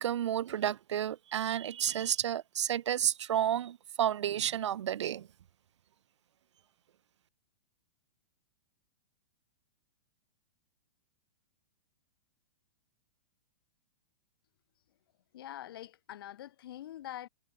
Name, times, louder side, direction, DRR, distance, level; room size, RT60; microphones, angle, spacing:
voice 1, 0.0-5.3, right 10 dB, 65° right, 0.9 m, -31 dB
voice 2, 15.3-17.3, left 12 dB, 50° left, 2.1 m, -44 dB
hypercardioid pair, 175°, 16 cm